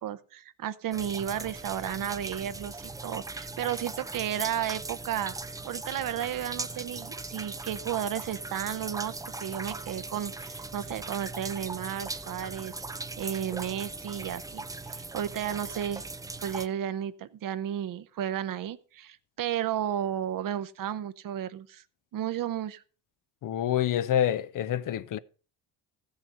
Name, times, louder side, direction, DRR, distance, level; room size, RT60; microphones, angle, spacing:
voice 1, 0.0-5.3 5.6-12.7 13.2-16.0 16.4-21.8 22.1-22.8, right 10 dB, 50° right, 0.8 m, -33 dB
sound 1, 0.9-16.7, right 3 dB, 10° right, 0.5 m, -39 dB
voice 2, 23.4-25.2, left 10 dB, 45° left, 0.6 m, -27 dB
14.0 x 6.5 x 5.4 m
supercardioid pair, 85°, 44 cm